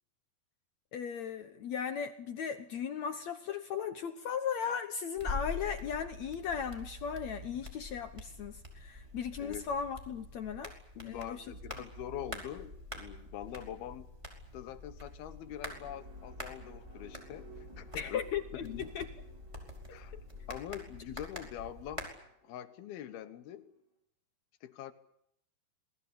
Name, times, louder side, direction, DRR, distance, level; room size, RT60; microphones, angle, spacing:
voice 1, 0.9-10.7 11.0-11.5 17.9-19.1 19.9-20.0, left 7 dB, 65° left, 9 dB, 1.8 m, -37 dB
sound 1, 5.2-22.1, left 2 dB, 10° right, 4.8 m, -46 dB
voice 2, 10.9-14.1 14.5-18.2 18.6-18.9 19.9-20.1 20.5-22.1 22.4-23.7 24.6-24.9, left 11 dB, 85° left, 11 dB, 3.3 m, -44 dB
sound 2, 15.2-23.8, right 4 dB, 60° right, 9.1 m, -59 dB
27.0 x 20.0 x 8.6 m, 0.78 s
omnidirectional pair, 4.3 m